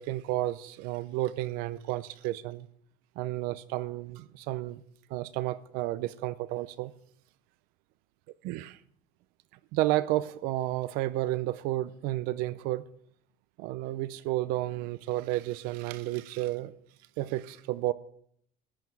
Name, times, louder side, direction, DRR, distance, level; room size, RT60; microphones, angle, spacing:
voice 1, 0.0-2.7 3.2-4.8 5.1-6.9 8.4-8.8 9.7-12.8 13.6-16.7 17.2-17.9, right 16 dB, 65° right, 0.6 m, -31 dB
15.0 x 11.0 x 4.6 m
cardioid pair, 170°, 16 cm